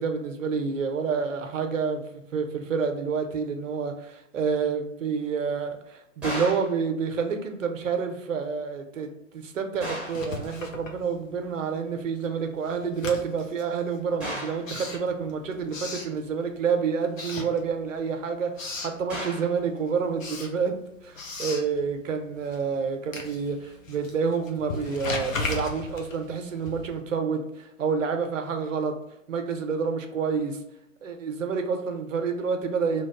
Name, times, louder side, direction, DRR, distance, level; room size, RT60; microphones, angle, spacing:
voice 1, 0.0-2.0 2.3-18.5 18.8-20.7 21.0-28.9 29.3-30.6 31.0-33.1, right 5 dB, 75° right, 6 dB, 0.7 m, -28 dB
sound 1, 6.2-6.8 9.8-10.3 14.2-14.7 19.1-19.6, equal, 5° right, 0.7 m, -34 dB
Writing, 10.0-11.6 11.9-16.7 17.1-18.1 18.3-19.0 19.4-27.1, left 3 dB, 80° left, 0.8 m, -37 dB
2.9 x 2.2 x 3.4 m, 0.83 s
figure-of-eight pair, 115°, 39 cm